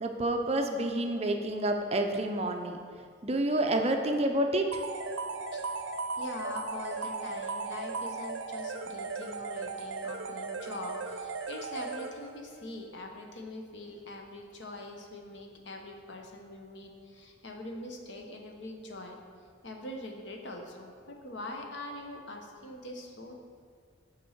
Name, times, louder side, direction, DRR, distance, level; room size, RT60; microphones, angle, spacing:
voice 1, 0.0-2.8 3.2-4.6, right 1 dB, 35° right, 4 dB, 0.5 m, -28 dB
sound 1, 4.7-12.5, right 4 dB, 80° right, 0.5 m, -37 dB
voice 2, 5.5-5.8 6.1-19.2 19.6-23.3, left 1 dB, 70° left, 2 dB, 1.0 m, -43 dB
7.2 x 4.4 x 6.4 m, 2.1 s
head